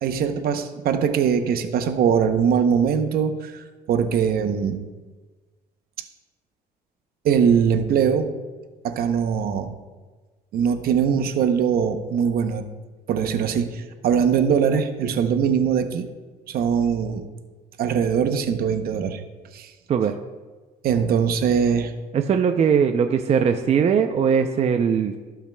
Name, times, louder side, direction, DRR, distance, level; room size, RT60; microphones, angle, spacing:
voice 1, 0.0-4.8 7.2-8.3 8.8-9.8 10.5-12.6 13.1-16.1 16.5-17.2 17.8-19.2 19.5-19.7 20.8-21.9, right 7 dB, 65° right, 8 dB, 0.8 m, -21 dB
voice 2, 22.1-25.1, right 7 dB, 40° right, 6 dB, 0.5 m, -20 dB
17.0 x 5.7 x 2.3 m, 1.3 s
cardioid pair, 110°, 17 cm